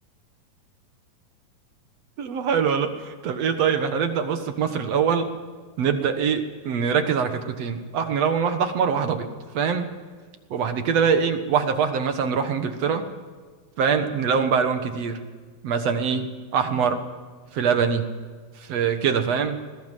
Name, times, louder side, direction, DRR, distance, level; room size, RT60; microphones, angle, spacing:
voice 1, 2.2-5.3 5.8-9.3 9.5-9.9 10.5-13.0 13.8-15.2 15.6-17.0 17.5-18.1 18.6-19.6, right 6 dB, 55° right, 8 dB, 2.1 m, -23 dB
20.5 x 17.5 x 7.5 m, 1.5 s
omnidirectional pair, 4.1 m